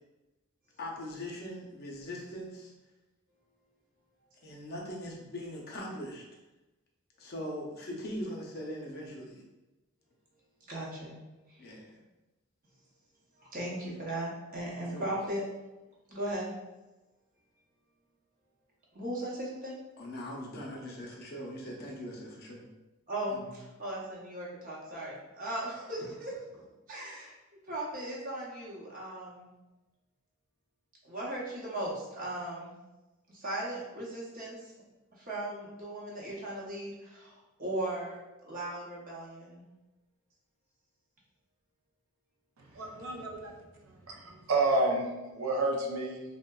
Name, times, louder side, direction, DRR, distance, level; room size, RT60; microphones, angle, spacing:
voice 1, 0.8-2.7 4.4-6.2 7.2-9.4 11.6-12.0 14.8-15.0 20.0-22.6 23.3-23.5, left 1 dB, 50° left, -1 dB, 0.6 m, -41 dB
voice 2, 10.7-11.2 11.5-11.6 13.4-15.4 16.1-16.5 18.9-19.8 23.1-26.6 26.9-27.3 27.7-29.5 31.0-32.7 33.3-34.7 35.2-37.3 37.6-39.6, right 1 dB, 40° right, -5 dB, 0.7 m, -37 dB
voice 3, 42.7-43.5 44.1-45.1 45.3-46.2, right 2 dB, 80° right, 1 dB, 0.5 m, -29 dB
3.6 x 2.1 x 2.2 m, 1.1 s
head